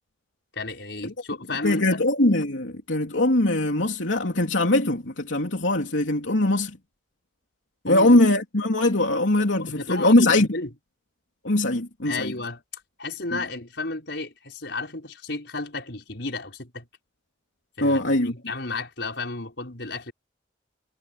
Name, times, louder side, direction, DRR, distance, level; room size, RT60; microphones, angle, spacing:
voice 1, 0.5-2.0 7.9-8.2 9.6-10.7 12.1-12.6 13.0-16.8 17.8-20.1, left 3 dB, 65° left, 5.1 m, -33 dB
voice 2, 1.6-6.8 7.8-10.5 11.4-12.3 13.3-13.4 17.8-18.3, left 1 dB, 80° left, 3.2 m, -21 dB
head